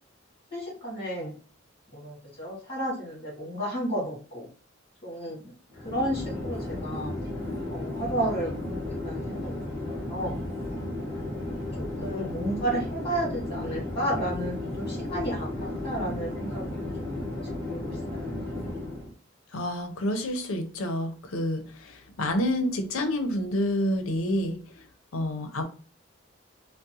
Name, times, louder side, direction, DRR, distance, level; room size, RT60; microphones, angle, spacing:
voice 1, 0.5-1.4 1.9-4.5 5.0-5.5 5.8-7.1 7.7-9.6 9.9-10.4 12.0-15.5 15.8-17.1 17.7-18.3, right 1 dB, 25° left, -6 dB, 1.6 m, -32 dB
Chatter / Fixed-wing aircraft airplane, 5.7-19.1, left 1 dB, 10° right, 1.6 m, -34 dB
voice 2, 19.5-24.6 25.1-25.6, left 1 dB, 85° left, 6 dB, 0.6 m, -28 dB
3.5 x 2.1 x 2.7 m, 0.38 s
head